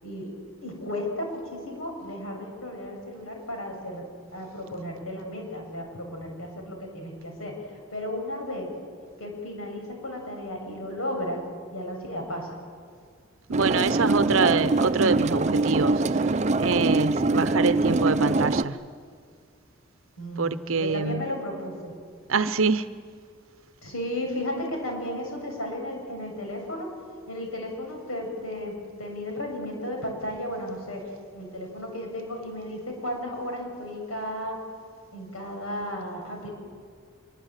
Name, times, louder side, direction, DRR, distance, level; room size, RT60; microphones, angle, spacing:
voice 1, 0.0-8.7 9.2-11.4 11.7-12.6 20.2-21.9 23.8-26.9 27.3-31.0 31.3-34.6 35.1-36.5, left 1 dB, 85° left, 7.3 m, -34 dB
sound 1, 13.5-18.6, right 2 dB, 35° right, 0.7 m, -23 dB
voice 2, 13.5-16.0 16.6-18.8 20.4-21.3 22.3-22.9, right 4 dB, 70° right, 0.8 m, -25 dB
26.0 x 23.5 x 9.0 m
head